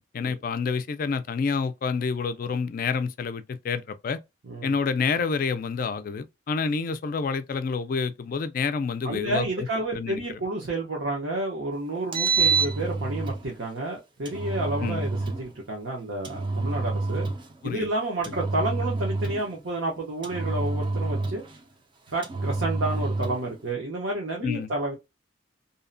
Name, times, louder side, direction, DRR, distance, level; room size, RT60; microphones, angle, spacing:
voice 1, 0.1-4.2 4.6-9.5 9.9-10.4 14.8-15.1 17.6-17.9 24.4-24.7, left 5 dB, 50° left, 0.3 m, -28 dB
voice 2, 9.0-17.3 17.6-21.4 22.1-25.0, right 2 dB, 85° right, 0.8 m, -30 dB
Engine, 12.0-13.4 14.3-15.4 16.2-17.5 18.2-19.5 20.2-21.6 22.2-23.5, right 3 dB, 25° right, 0.4 m, -27 dB
2.7 x 2.1 x 2.5 m
head